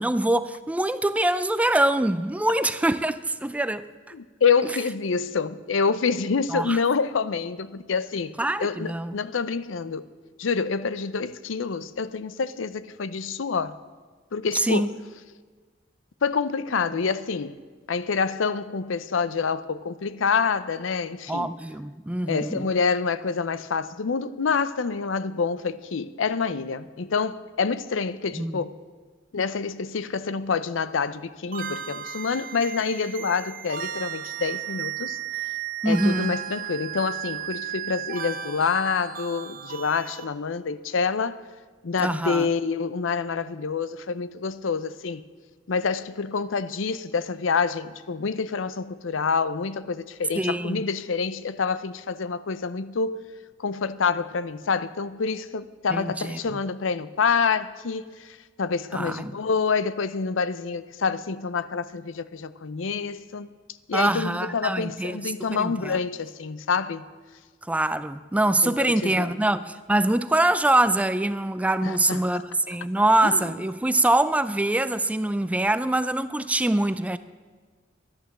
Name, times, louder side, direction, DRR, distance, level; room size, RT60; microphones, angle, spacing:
voice 1, 0.0-3.8 6.5-6.8 8.4-9.2 14.5-14.9 21.3-22.7 28.3-28.6 35.8-36.3 42.0-42.5 50.4-50.8 55.9-56.6 58.9-59.3 63.9-66.0 67.7-77.2, right 1 dB, 5° right, 0.4 m, -24 dB
voice 2, 4.1-10.1 10.4-13.8 14.3-14.9 16.2-17.6 17.9-21.5 22.3-28.7 29.3-35.2 35.9-41.4 41.8-45.2 45.7-53.2 53.6-63.5 63.9-67.1 68.6-69.4 71.8-72.2 73.2-73.4, left 5 dB, 85° left, 0.6 m, -27 dB
sound 1, 31.5-40.2, right 10 dB, 50° right, 0.9 m, -34 dB
11.5 x 11.5 x 7.3 m
head